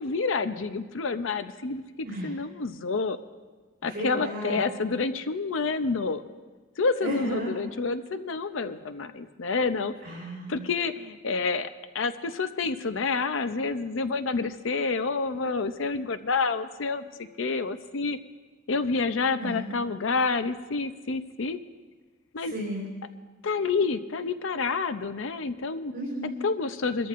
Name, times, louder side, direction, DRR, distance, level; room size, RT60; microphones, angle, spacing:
voice 1, 0.0-1.8 2.2-3.2 3.8-6.3 6.8-9.9 10.5-11.7 11.9-18.2 18.7-21.6 22.3-22.5 23.4-25.9 26.4-27.1, left 4 dB, 75° left, 11 dB, 0.6 m, -28 dB
voice 2, 3.8-4.6 7.0-7.5 10.0-10.7 19.4-19.7 22.4-22.8 25.9-26.4, right 1 dB, 55° right, -6 dB, 4.1 m, -34 dB
23.0 x 14.0 x 2.5 m, 1.3 s
head